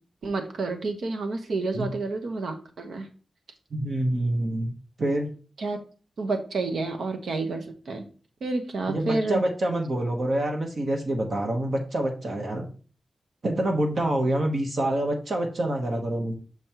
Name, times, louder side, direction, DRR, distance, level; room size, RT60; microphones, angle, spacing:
voice 1, 0.2-3.1 5.6-5.8 6.2-8.0 8.4-9.4, right 3 dB, 75° right, 6 dB, 1.0 m, -29 dB
voice 2, 3.7-4.7 5.0-5.3 8.9-12.7 13.4-16.3, right 1 dB, 55° right, 2 dB, 1.0 m, -26 dB
6.1 x 5.2 x 3.0 m, 0.38 s
wide cardioid pair, 100°, 0 cm